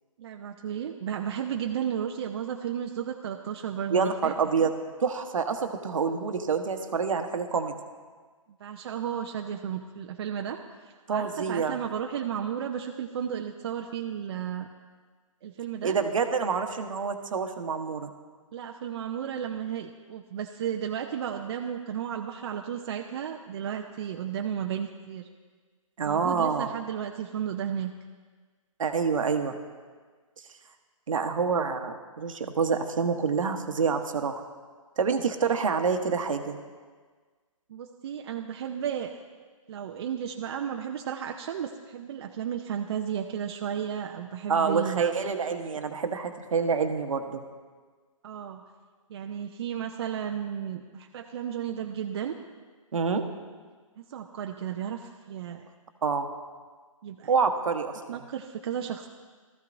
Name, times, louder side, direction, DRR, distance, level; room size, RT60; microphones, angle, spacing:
voice 1, 0.2-4.3 8.6-10.6 10.8-14.7 15.4-16.0 18.5-25.3 26.0-27.9 37.7-39.2 39.7-45.3 48.2-48.6 49.1-52.3 54.0-55.7 57.0-57.3 58.1-59.1, right 9 dB, 50° right, 3 dB, 0.6 m, -33 dB
voice 2, 3.9-4.7 5.0-7.7 11.1-11.8 15.8-18.1 26.0-26.7 28.8-29.6 31.1-34.4 35.0-36.6 44.5-47.4 52.9-53.2 56.0-56.3 57.3-58.2, right 5 dB, 70° right, 6 dB, 1.1 m, -27 dB
15.5 x 14.0 x 2.6 m, 1.5 s
figure-of-eight pair, 135°, 18 cm